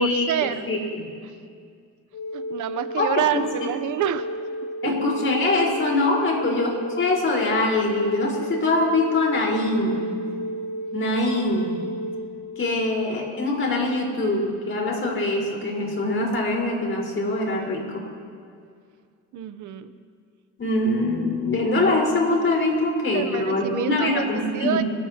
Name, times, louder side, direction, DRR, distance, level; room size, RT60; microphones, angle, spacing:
voice 1, 0.0-0.7 1.2-1.3 2.3-4.3 4.8-5.0 6.3-6.4 12.7-13.1 19.3-19.9 23.1-24.8, right 10 dB, 80° right, 11 dB, 0.8 m, -28 dB
voice 2, 0.7-1.1 3.0-3.4 4.8-10.1 10.9-11.9 12.6-18.0 20.6-24.9, left 2 dB, 45° left, -2 dB, 4.5 m, -23 dB
sound 1, 2.1-14.6 16.3-16.4, equal, 70° left, 1.7 m, -33 dB
28.5 x 12.0 x 2.9 m, 2.2 s
cardioid pair, 90°, 30 cm